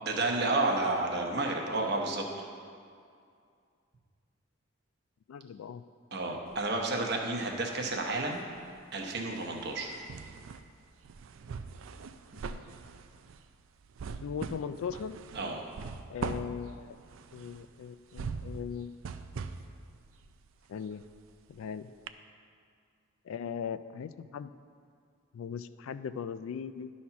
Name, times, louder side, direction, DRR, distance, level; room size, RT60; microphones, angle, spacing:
voice 1, 0.0-2.2 6.1-8.4 8.9-10.0 15.3-15.7, right 2 dB, 50° right, 1 dB, 1.0 m, -31 dB
voice 2, 5.3-5.8 12.3-12.6 14.2-15.2 16.1-17.0 17.3-18.9 20.7-21.0 21.5-21.9 23.3-24.5 25.3-26.9, left 7 dB, 75° left, 13 dB, 0.3 m, -39 dB
sound 1, 6.5-7.6 7.9-21.7 22.1-22.2, right 5 dB, 70° right, 0.4 m, -42 dB
11.5 x 4.2 x 5.8 m, 2.3 s
head